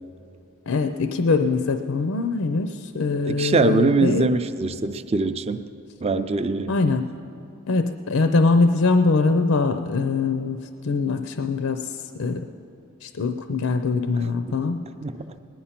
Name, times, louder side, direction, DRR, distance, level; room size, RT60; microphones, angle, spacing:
voice 1, 0.7-4.3 6.7-7.1 7.7-10.6 10.8-11.9 12.2-12.5 13.0-14.9, left 3 dB, 70° left, 8 dB, 0.5 m, -22 dB
voice 2, 3.3-5.6 6.0-6.8 14.5-14.6 15.0-15.4, right 3 dB, 30° right, 10 dB, 0.5 m, -23 dB
19.5 x 10.0 x 5.8 m, 2.8 s
head